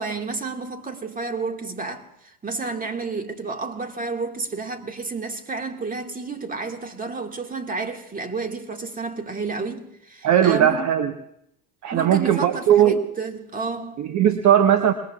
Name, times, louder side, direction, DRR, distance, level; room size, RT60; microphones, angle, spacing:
voice 1, 0.0-2.0 2.4-10.9 11.9-14.0, right 4 dB, 20° right, 1.9 m, -30 dB
voice 2, 10.2-11.1 11.8-13.0 14.0-14.9, right 10 dB, 40° right, 1.0 m, -18 dB
27.0 x 20.5 x 2.4 m
hypercardioid pair, 85°, 46 cm